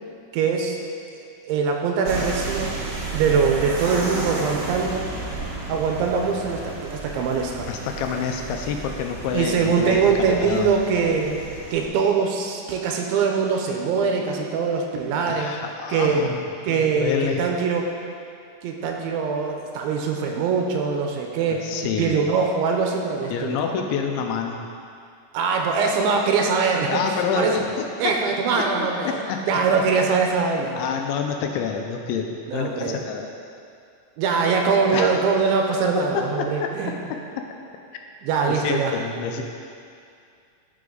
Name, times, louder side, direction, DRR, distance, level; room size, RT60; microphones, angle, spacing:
voice 1, 0.3-0.8 1.5-2.7 3.1-5.1 5.7-7.7 9.3-11.4 11.7-15.5 15.9-16.2 16.6-17.9 18.6-21.7 22.0-23.6 25.3-27.0 27.3-27.6 28.0-29.1 29.5-30.8 32.5-33.0 34.2-37.0 38.2-39.0, right 5 dB, 80° right, 2 dB, 3.0 m, -22 dB
sound 1, 2.1-11.9, right 3 dB, 65° right, 2.3 m, -32 dB
voice 2, 7.7-10.1 10.4-10.7 15.3-17.5 21.5-22.2 23.3-24.6 26.9-28.1 28.6-29.6 30.8-33.3 34.9-35.2 36.1-37.5 38.4-39.4, left 6 dB, 85° left, 3 dB, 2.9 m, -28 dB
14.0 x 6.0 x 3.9 m, 2.4 s
omnidirectional pair, 5.5 m